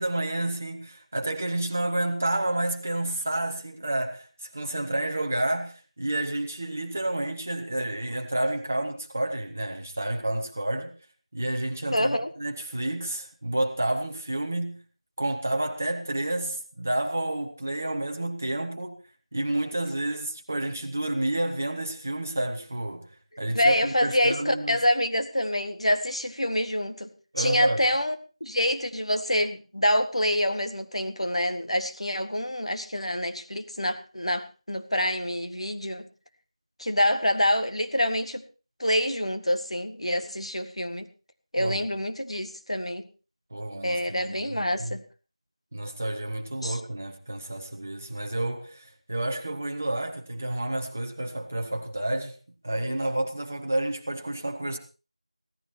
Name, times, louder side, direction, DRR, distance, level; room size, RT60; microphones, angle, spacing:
voice 1, 0.0-10.9 11.3-14.8 15.2-19.0 19.3-23.1 23.4-24.8 27.3-27.8 41.6-41.9 43.5-45.0 45.7-52.4 52.6-54.8, right 1 dB, 20° right, 1.3 m, -30 dB
voice 2, 11.9-12.3 23.6-27.1 27.4-28.1 28.4-36.1 36.8-38.4 38.8-41.1 41.5-43.1 43.8-45.0 46.6-46.8, left 1 dB, 65° left, 1.8 m, -26 dB
17.0 x 14.0 x 4.4 m
figure-of-eight pair, 175°, 3 cm